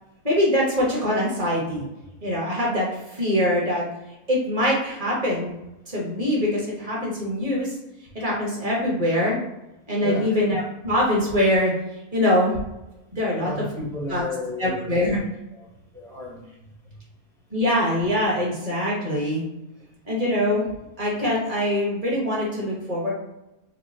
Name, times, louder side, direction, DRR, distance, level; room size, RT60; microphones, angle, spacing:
voice 1, 0.2-1.8 2.2-3.8 4.3-5.5 5.9-7.7 8.1-9.4 9.9-11.7 12.1-12.6 13.1-13.5 14.1-14.2 14.6-15.2 17.5-19.4 20.1-20.6 21.0-23.1, left 1 dB, 25° right, -5 dB, 1.1 m, -23 dB
voice 2, 10.0-10.4 13.4-14.9 15.5-15.7 15.9-16.5, left 2 dB, 5° left, -5 dB, 0.5 m, -33 dB
4.3 x 2.4 x 2.8 m, 0.95 s
omnidirectional pair, 1.5 m